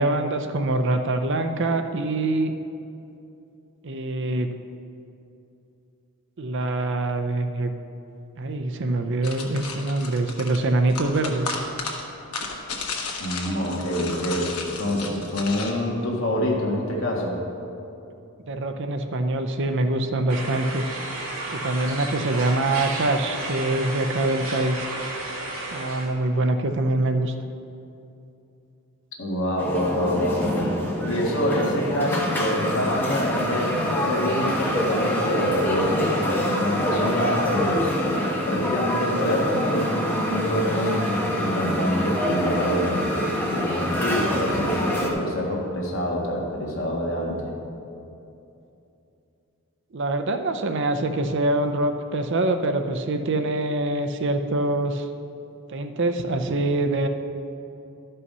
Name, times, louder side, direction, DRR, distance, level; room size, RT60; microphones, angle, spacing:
voice 1, 0.0-2.5 3.8-4.5 6.4-7.7 8.4-11.6 18.5-20.8 21.5-24.9 25.7-27.3 49.9-55.1 55.7-57.1, right 2 dB, 55° right, 7 dB, 0.6 m, -24 dB
sound 1, 9.2-15.7, left 4 dB, 90° left, 1.3 m, -34 dB
voice 2, 13.2-17.4 29.2-30.6 31.0-37.9 38.5-47.5, equal, 60° left, -2 dB, 1.8 m, -26 dB
sound 2, 20.3-26.1, right 2 dB, 75° right, 2.0 m, -32 dB
sound 3, 29.6-45.1, left 1 dB, 10° left, 1.1 m, -26 dB
12.5 x 5.5 x 5.5 m, 2.7 s
head